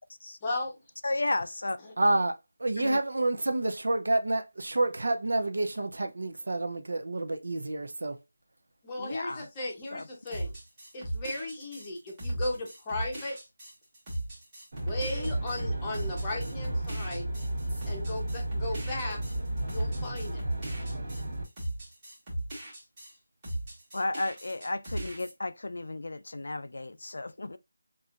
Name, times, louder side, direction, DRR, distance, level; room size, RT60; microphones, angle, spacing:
voice 1, 0.4-0.7 1.8-1.9 8.8-10.5 10.9-13.4 14.8-17.3 17.9-19.2 19.7-20.4, left 2 dB, 10° left, 0.8 m, -36 dB
voice 2, 1.0-1.8 2.8-3.0 9.0-9.5 9.9-10.0 23.9-27.6, left 2 dB, 65° left, 0.4 m, -33 dB
voice 3, 2.0-2.3 2.6-8.2, right 2 dB, 70° right, 0.6 m, -28 dB
sound 1, 10.3-23.1 23.4-25.3, right 1 dB, 15° right, 1.4 m, -37 dB
Aircraft, 14.7-21.4, right 1 dB, 45° right, 1.5 m, -34 dB
5.4 x 2.5 x 2.4 m
figure-of-eight pair, 180°, 0 cm